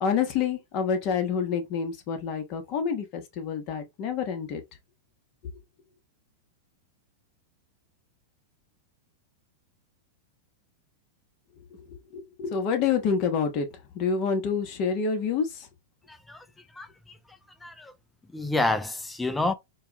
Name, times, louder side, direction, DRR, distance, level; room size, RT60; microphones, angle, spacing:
voice 1, 0.0-4.6 11.7-13.7 13.9-15.7, left 6 dB, 45° left, 1.1 m, -28 dB
voice 2, 16.1-16.5 16.7-17.2 17.6-17.9 18.3-19.5, left 2 dB, 5° left, 0.5 m, -29 dB
4.5 x 2.3 x 2.9 m
hypercardioid pair, 130°, 0 cm